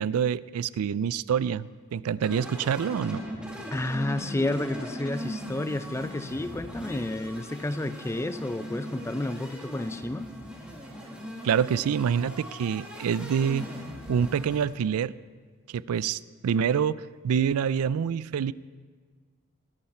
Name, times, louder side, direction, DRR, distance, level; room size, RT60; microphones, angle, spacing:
voice 1, 0.0-3.2 11.4-13.7 14.1-15.1 15.7-18.5, right 7 dB, 85° right, 19 dB, 0.3 m, -26 dB
sound 1, 2.2-14.6, equal, 5° right, 2.0 m, -40 dB
voice 2, 3.7-10.3, left 1 dB, 10° left, 11 dB, 0.4 m, -31 dB
20.5 x 11.5 x 4.3 m, 1.5 s
head